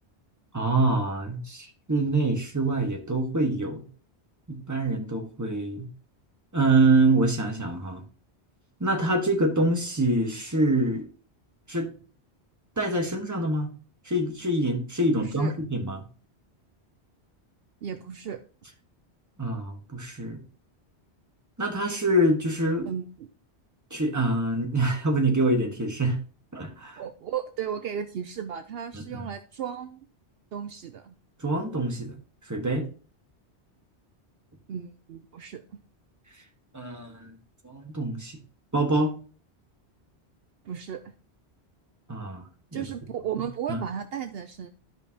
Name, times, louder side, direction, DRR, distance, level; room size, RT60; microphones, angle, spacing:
voice 1, 0.5-3.8 4.5-5.9 6.5-8.0 8.8-11.1 11.7-11.9 12.8-13.7 14.0-16.0 19.4-20.4 21.6-22.9 23.9-26.2 26.5-27.0 28.9-29.3 31.4-32.2 32.5-32.9 36.7-37.3 37.6-38.4 38.7-39.1 42.1-42.4 42.7-42.9 43.7-43.8, right 2 dB, 15° right, 1.3 m, -25 dB
voice 2, 15.2-15.5 17.8-18.4 22.9-23.3 27.0-30.0 30.5-31.2 34.7-35.6 40.6-41.0 42.7-44.7, right 8 dB, 65° right, 0.8 m, -34 dB
12.5 x 5.2 x 2.8 m
omnidirectional pair, 1.1 m